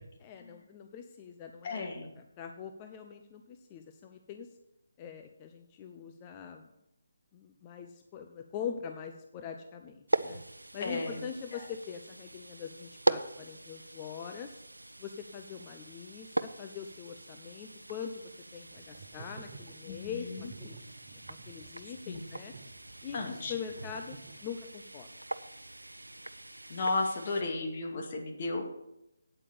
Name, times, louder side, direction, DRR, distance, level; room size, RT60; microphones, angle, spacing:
voice 1, 0.2-1.9 2.4-4.5 5.0-6.7 7.3-10.4 10.7-14.5 15.0-18.1 18.5-20.3 20.6-20.8 21.3-22.5 23.0-25.1, left 7 dB, 25° left, 5 dB, 0.7 m, -43 dB
voice 2, 1.6-2.1 10.8-11.2 11.5-11.6 19.9-20.5 22.1-22.2 23.1-23.5 26.7-28.6, left 3 dB, 40° left, 2 dB, 2.1 m, -34 dB
sound 1, 10.1-27.4, right 1 dB, 85° right, 0.6 m, -40 dB
sound 2, 18.7-24.8, right 5 dB, 40° right, 1.2 m, -51 dB
9.0 x 8.3 x 7.0 m, 0.87 s
figure-of-eight pair, 150°, 0 cm